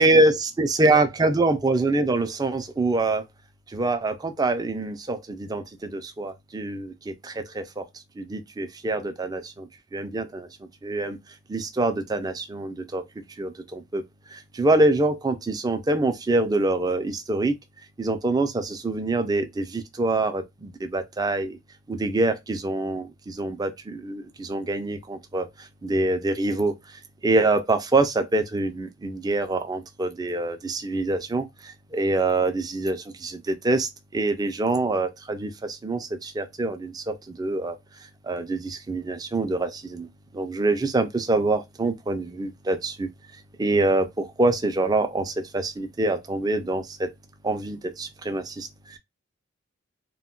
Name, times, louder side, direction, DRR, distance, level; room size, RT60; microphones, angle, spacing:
voice 1, 0.0-3.2 3.7-7.9 8.2-10.5 10.8-11.2 11.5-13.0 13.4-14.0 14.3-17.6 18.0-21.6 21.9-37.8 38.2-40.1 40.3-43.1 43.6-47.1 47.4-49.0, right 2 dB, 20° right, 0.3 m, -25 dB
2.2 x 2.1 x 3.6 m
head